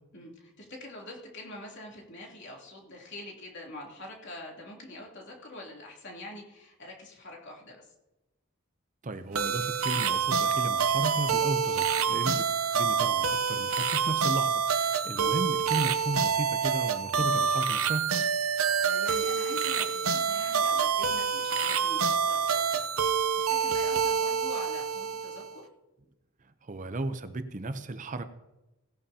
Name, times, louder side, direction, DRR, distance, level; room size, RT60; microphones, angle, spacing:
voice 1, 0.1-7.9 12.1-12.3 15.1-15.3 18.8-25.7, left 1 dB, 55° left, -2 dB, 3.0 m, -45 dB
voice 2, 9.0-18.1 26.6-28.2, right 2 dB, 35° right, 10 dB, 0.6 m, -34 dB
sound 1, 9.4-25.5, right 6 dB, 75° right, 0.8 m, -27 dB
18.0 x 11.0 x 2.8 m, 1.0 s
head